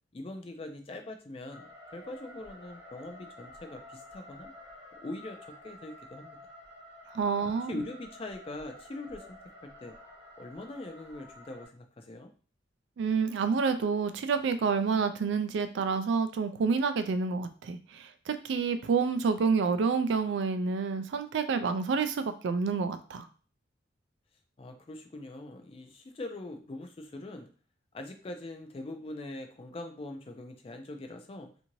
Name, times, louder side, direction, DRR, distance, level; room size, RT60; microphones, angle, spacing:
voice 1, 0.1-4.5 5.0-6.4 7.4-10.0 10.4-12.3 24.6-27.5 27.9-31.5, left 2 dB, 30° left, 5 dB, 0.4 m, -42 dB
sound 1, 1.5-11.7, left 1 dB, 15° right, 0.7 m, -51 dB
voice 2, 7.1-7.8 13.0-23.3, right 5 dB, 70° right, 9 dB, 0.3 m, -28 dB
2.7 x 2.6 x 2.9 m, 0.41 s
head